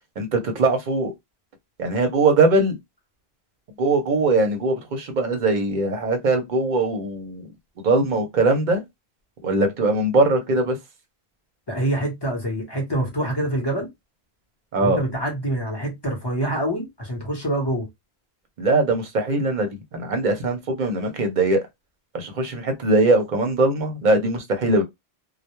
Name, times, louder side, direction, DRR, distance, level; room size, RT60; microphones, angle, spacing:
voice 1, 0.2-1.1 1.8-2.8 3.8-7.5 7.8-8.8 9.4-10.8 14.7-15.0 18.6-21.6 22.1-24.8, right 2 dB, 55° right, 0.7 m, -21 dB
voice 2, 11.7-13.9 14.8-17.9, right 1 dB, 25° left, 0.7 m, -25 dB
2.1 x 2.0 x 2.8 m
omnidirectional pair, 1.1 m